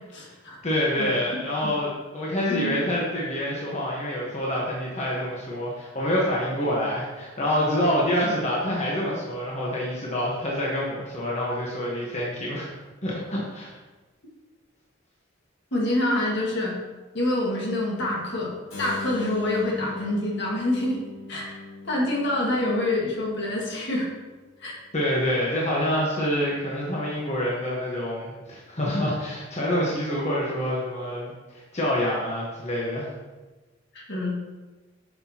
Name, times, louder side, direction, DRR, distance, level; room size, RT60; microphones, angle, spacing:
voice 1, 0.1-0.6 1.0-1.1 1.6-1.7 2.5-2.8 15.7-16.8 17.1-18.5 18.8-21.0 21.3-24.1 24.6-24.8 33.9-34.4, left 1 dB, 60° left, -2 dB, 1.7 m, -26 dB
voice 2, 0.6-12.7 13.0-13.7 24.9-33.1, left 1 dB, 35° left, -4 dB, 1.2 m, -27 dB
Keyboard (musical), 18.7-24.5, left 4 dB, 75° left, 2.2 m, -40 dB
8.6 x 5.9 x 2.9 m, 1.2 s
head